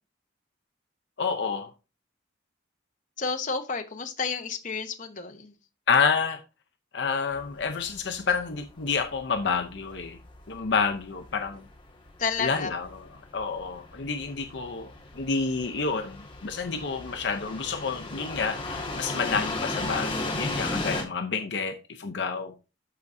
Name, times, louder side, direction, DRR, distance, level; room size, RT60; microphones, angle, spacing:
voice 1, 1.2-1.7 5.9-6.4 6.9-10.2 10.5-11.6 12.4-22.5, left 5 dB, 65° left, 0.6 m, -29 dB
voice 2, 3.2-5.5 12.2-12.7, left 5 dB, 40° left, 1.0 m, -31 dB
sound 1, 7.3-21.0, left 2 dB, 25° left, 1.7 m, -36 dB
12.5 x 4.7 x 2.6 m
head